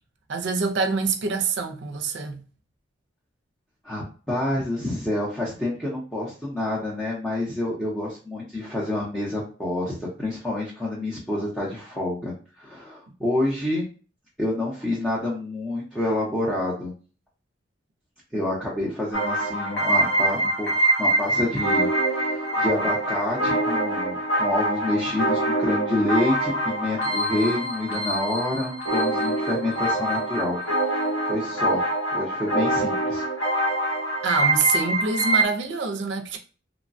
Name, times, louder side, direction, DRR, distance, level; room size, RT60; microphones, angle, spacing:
voice 1, 0.3-2.4 34.2-36.4, right 4 dB, 65° right, 0.5 m, -25 dB
voice 2, 3.8-13.9 14.4-16.9 18.3-21.9 22.2-30.6 31.2-31.8 32.1-33.2, left 1 dB, 5° left, 0.7 m, -28 dB
sound 1, 19.1-35.4, right 1 dB, 75° left, 1.0 m, -24 dB
3.0 x 2.2 x 2.5 m
head